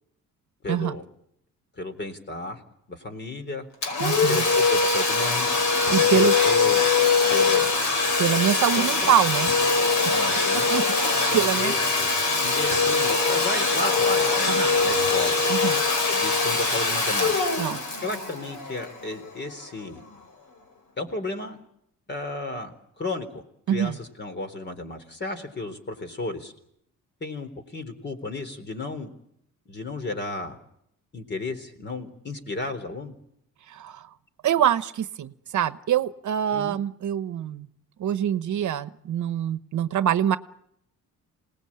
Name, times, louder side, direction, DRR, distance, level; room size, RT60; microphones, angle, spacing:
voice 1, 0.6-1.1 1.8-2.6 2.9-3.7 4.3-5.5 6.0-6.9 7.3-7.7 8.7-9.1 10.1-10.7 11.3-12.1 12.4-15.4 16.0-17.3 18.0-20.0 21.0-21.6 22.1-22.7 23.0-26.5 27.2-29.1 29.7-30.6 31.1-33.1 36.5-36.8, left 2 dB, 35° left, 8 dB, 3.8 m, -33 dB
Domestic sounds home sounds, 3.8-19.3, left 4 dB, 60° left, 5.2 m, -22 dB
voice 2, 4.0-4.4 5.9-6.4 8.2-9.5 9.8-10.0 10.5-11.7 14.5-14.7 15.5-15.8 17.6-17.8 23.7-24.0 33.7-34.1 34.4-37.7 38.0-40.4, right 10 dB, 65° right, 12 dB, 1.1 m, -25 dB
27.5 x 19.5 x 8.8 m, 0.76 s
cardioid pair, 120°, 33 cm